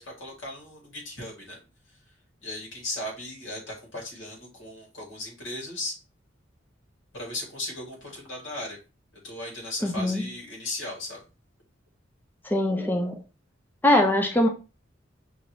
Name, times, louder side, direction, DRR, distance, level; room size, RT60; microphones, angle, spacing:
voice 1, 0.0-1.6 2.4-6.0 7.1-8.8 9.2-11.2, left 1 dB, 80° left, -1 dB, 2.3 m, -36 dB
voice 2, 9.8-10.2 12.4-13.2 13.8-14.5, left 1 dB, 10° left, 2 dB, 0.5 m, -22 dB
5.4 x 2.6 x 3.1 m, 0.30 s
head